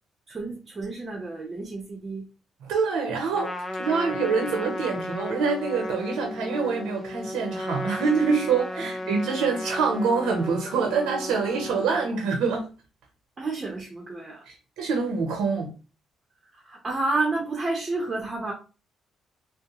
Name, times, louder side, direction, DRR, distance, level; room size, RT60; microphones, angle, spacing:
voice 1, 0.3-2.3 8.7-8.9 13.4-14.4 16.5-18.5, right 3 dB, 30° right, 0.8 m, -30 dB
voice 2, 2.6-3.5 3.8-12.7 14.5-15.7, right 5 dB, 90° right, 0.7 m, -25 dB
Trumpet, 3.3-12.1, left 1 dB, 20° left, 0.5 m, -34 dB
3.5 x 2.1 x 2.9 m
cardioid pair, 90°, 0 cm